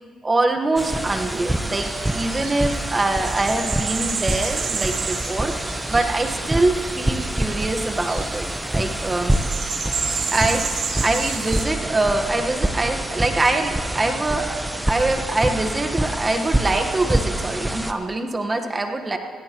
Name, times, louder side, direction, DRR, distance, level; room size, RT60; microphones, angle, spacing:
voice 1, 0.2-8.5 8.7-9.4 10.3-14.5 14.9-19.2, right 2 dB, 25° right, 5 dB, 1.2 m, -24 dB
sound 1, 0.8-17.9, right 1 dB, 10° right, 0.8 m, -26 dB
sound 2, 0.8-11.7, right 5 dB, 65° right, 1.6 m, -32 dB
17.5 x 17.0 x 3.0 m, 2.1 s
cardioid pair, 90°, 0 cm